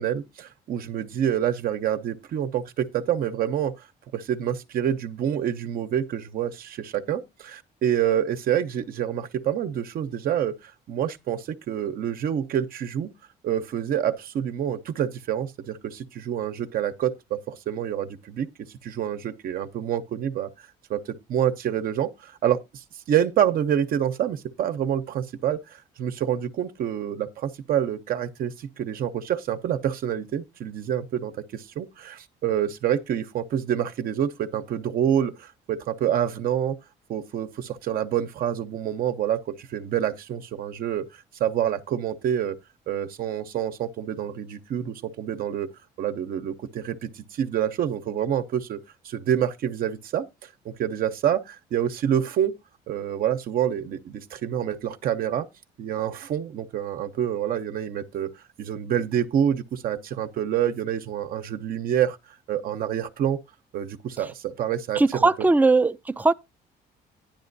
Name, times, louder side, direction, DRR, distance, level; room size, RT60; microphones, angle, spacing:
voice 1, 0.0-3.9 4.1-13.1 13.4-18.5 18.8-20.5 20.9-36.8 37.1-42.6 42.9-45.7 46.0-52.5 52.9-55.5 55.8-58.3 58.6-62.2 62.5-63.4 63.7-65.3, right 9 dB, 60° right, 0.8 m, -27 dB
voice 2, 65.0-66.3, right 3 dB, 10° right, 0.5 m, -19 dB
10.5 x 10.0 x 2.6 m
cardioid pair, 110°, 17 cm